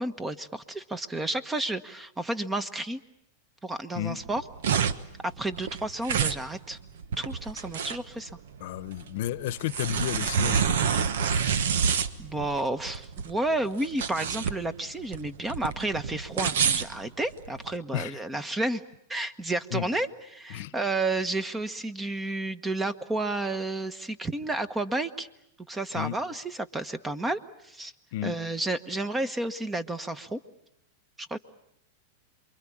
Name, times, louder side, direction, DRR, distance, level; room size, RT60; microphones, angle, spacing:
voice 1, 0.0-3.0 3.6-4.4 5.2-6.8 7.2-8.3 12.2-18.8 19.1-25.3 25.7-27.9 28.2-30.4 31.2-31.4, right 2 dB, 10° right, 13 dB, 1.2 m, -31 dB
sound 1, 4.2-17.7, right 7 dB, 75° right, 1.2 m, -28 dB
voice 2, 8.6-11.1 17.9-18.2 19.7-19.9 20.5-20.7 25.9-26.2 28.1-28.4, left 13 dB, 65° left, 16 dB, 1.0 m, -32 dB
28.0 x 23.0 x 8.7 m, 0.77 s
hypercardioid pair, 120°, 0 cm